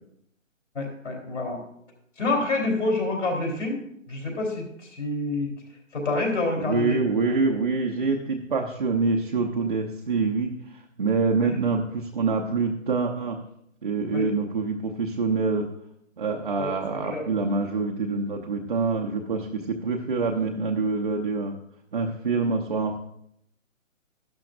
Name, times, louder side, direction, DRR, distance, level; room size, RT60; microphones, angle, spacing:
voice 1, 0.7-1.6 2.2-3.8 4.1-5.5 5.9-7.0 11.4-11.6 14.1-14.3 16.6-17.2, left 2 dB, 60° left, 0 dB, 3.6 m, -27 dB
voice 2, 6.6-13.4 13.8-15.7 16.2-21.5 21.9-23.0, right 4 dB, 40° right, 1 dB, 0.7 m, -26 dB
12.0 x 11.0 x 2.5 m, 0.73 s
hypercardioid pair, 165°, 40 cm